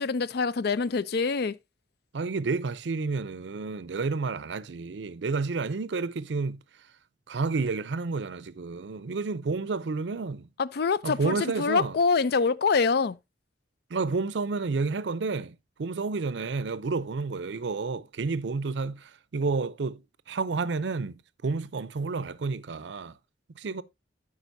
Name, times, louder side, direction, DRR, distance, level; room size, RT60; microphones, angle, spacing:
voice 1, 0.0-1.5 10.6-13.2, left 4 dB, 60° left, 0.5 m, -25 dB
voice 2, 2.1-6.6 7.3-10.5 11.0-11.9 13.9-20.0 20.3-23.2 23.5-23.8, right 4 dB, 80° right, 0.5 m, -30 dB
12.5 x 5.0 x 2.6 m
head